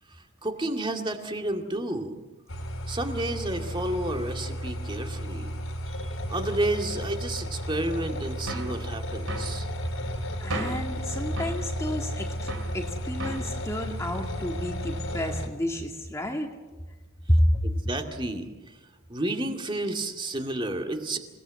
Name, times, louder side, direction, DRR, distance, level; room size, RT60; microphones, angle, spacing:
voice 1, 0.4-2.2 2.9-5.5 5.9-9.7 17.7-18.5 19.1-21.2, right 1 dB, 25° right, 4 dB, 2.2 m, -31 dB
sound 1, 2.5-15.5, equal, 85° left, 3.8 m, -33 dB
sound 2, 8.5-8.8 9.3-9.6 10.5-10.9 11.4-11.6 12.5-12.8 13.2-13.5, right 2 dB, 80° right, 3.7 m, -34 dB
voice 2, 10.4-16.5 17.3-17.7, equal, 15° left, 2 dB, 2.0 m, -29 dB
28.0 x 18.5 x 7.7 m, 1.2 s
head